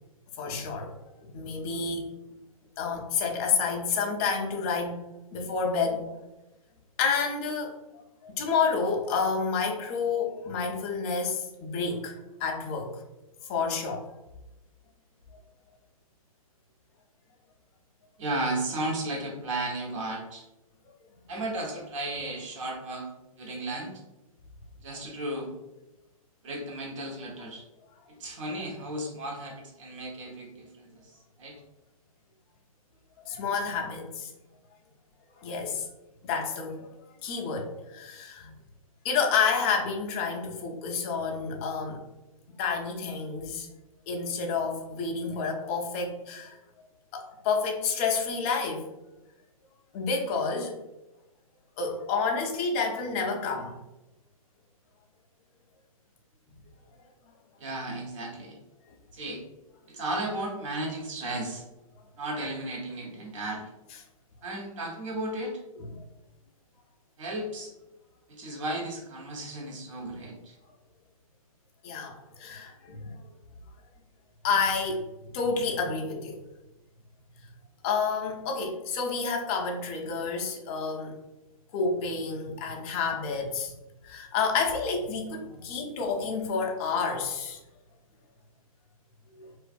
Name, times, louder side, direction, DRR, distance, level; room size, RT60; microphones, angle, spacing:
voice 1, 0.4-0.9 1.2-2.1 2.8-5.0 5.3-6.1 7.0-7.7 8.2-12.1 12.4-12.9 13.5-14.1 33.2-34.3 35.4-35.9 36.2-36.8 37.2-38.5 39.0-42.0 42.6-43.7 44.1-46.6 47.1-48.8 49.9-50.7 51.8-53.7 65.9-66.0 71.8-73.1 74.4-75.1 75.3-76.4 77.8-81.2 81.7-83.7 84.0-87.6 89.4-89.5, left 5 dB, 25° left, 1 dB, 0.4 m, -29 dB
voice 2, 18.2-20.5 21.3-23.1 23.4-24.0 24.8-25.5 26.4-27.6 28.2-31.0 31.4-31.6 57.6-58.6 59.1-59.4 59.9-61.6 62.2-63.7 64.4-65.6 67.2-67.7 68.3-70.5, right 2 dB, 55° right, -1 dB, 0.8 m, -34 dB
2.5 x 2.3 x 2.4 m, 0.99 s
hypercardioid pair, 140°, 19 cm